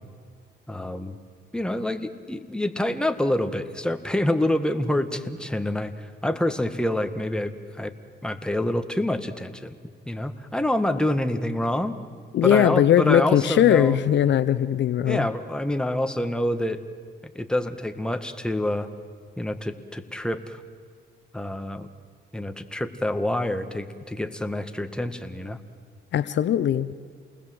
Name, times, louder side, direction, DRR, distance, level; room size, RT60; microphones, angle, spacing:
voice 1, 0.7-1.2 1.5-7.5 7.8-7.9 8.2-9.8 10.1-12.0 12.4-14.0 15.0-16.8 17.4-18.9 19.4-20.6 21.3-21.9 22.3-25.6, left 1 dB, 5° left, 8 dB, 1.8 m, -27 dB
voice 2, 12.3-15.3 26.1-26.9, left 10 dB, 65° left, 14 dB, 0.9 m, -20 dB
28.5 x 20.5 x 7.9 m, 2.1 s
cardioid pair, 90°, 20 cm